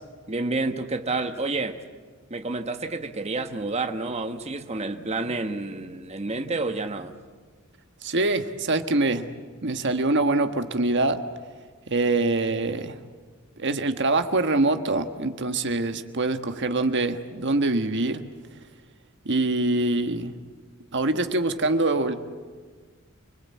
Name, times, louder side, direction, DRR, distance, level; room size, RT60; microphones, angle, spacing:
voice 1, 0.3-1.8 2.3-7.1, right 3 dB, 30° right, 1.2 m, -29 dB
voice 2, 8.0-9.3 9.6-11.2 11.9-13.0 13.6-18.2 19.2-20.3 20.9-22.1, right 2 dB, 55° right, 1.4 m, -24 dB
29.0 x 20.5 x 8.5 m
head